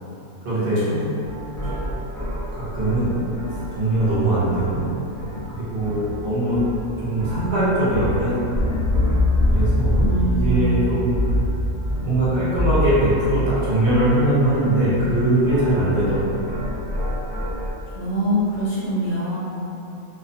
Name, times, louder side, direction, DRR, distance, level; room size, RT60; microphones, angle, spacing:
voice 1, 0.4-0.8 2.5-3.1 3.7-4.9 5.5-6.6 7.0-8.7 9.4-11.1 12.0-16.5, right 1 dB, 50° right, -10 dB, 0.8 m, -21 dB
sound 1, 1.2-4.8 5.1-17.7, left 1 dB, 15° right, 0.6 m, -25 dB
voice 2, 10.0-10.8 17.9-19.4, right 1 dB, 65° left, -9 dB, 0.8 m, -24 dB
2.4 x 2.1 x 2.6 m, 2.9 s
omnidirectional pair, 1.4 m